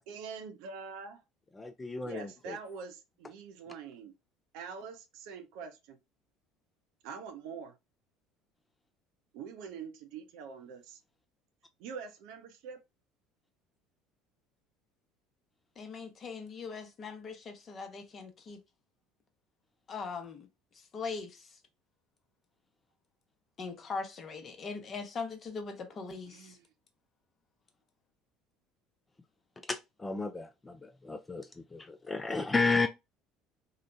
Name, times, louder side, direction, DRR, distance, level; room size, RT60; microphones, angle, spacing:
voice 1, 0.1-1.2 2.0-4.1 4.5-6.0 7.0-7.8 9.3-11.0 11.8-12.8 26.3-26.7, right 6 dB, 65° right, 0.5 m, -44 dB
voice 2, 1.6-2.6 29.7-32.9, left 3 dB, 20° left, 0.3 m, -33 dB
voice 3, 15.8-18.6 19.9-20.5 20.7-21.6 23.6-26.6, left 4 dB, 40° left, 0.7 m, -40 dB
2.8 x 2.1 x 2.5 m
figure-of-eight pair, 65°, 0 cm